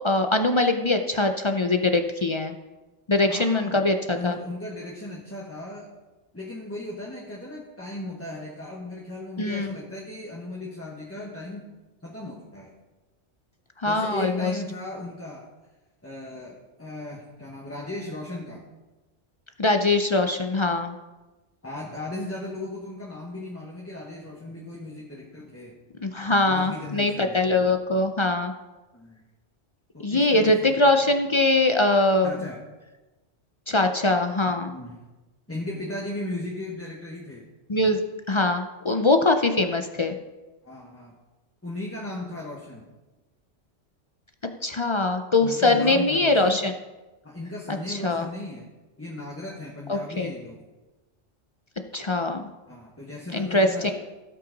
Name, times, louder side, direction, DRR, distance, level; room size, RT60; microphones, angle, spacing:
voice 1, 0.0-2.5 3.1-4.4 9.4-9.8 13.8-14.5 19.6-21.0 26.0-28.5 30.0-32.3 33.7-34.7 37.7-38.0 38.3-40.1 44.6-46.7 47.7-48.3 49.9-50.3 51.9-52.5 53.3-53.9, left 2 dB, 40° left, 6 dB, 0.4 m, -22 dB
voice 2, 3.3-5.9 6.3-11.6 12.0-12.7 13.8-15.5 16.0-18.6 21.6-25.8 26.4-27.4 28.9-29.2 29.9-30.9 32.2-32.6 34.7-35.0 35.5-37.4 40.6-41.1 41.6-42.9 45.4-46.6 47.2-48.7 49.0-50.6 52.7-53.9, left 2 dB, 10° left, -3 dB, 1.2 m, -36 dB
16.5 x 5.7 x 4.0 m, 1.1 s
omnidirectional pair, 1.2 m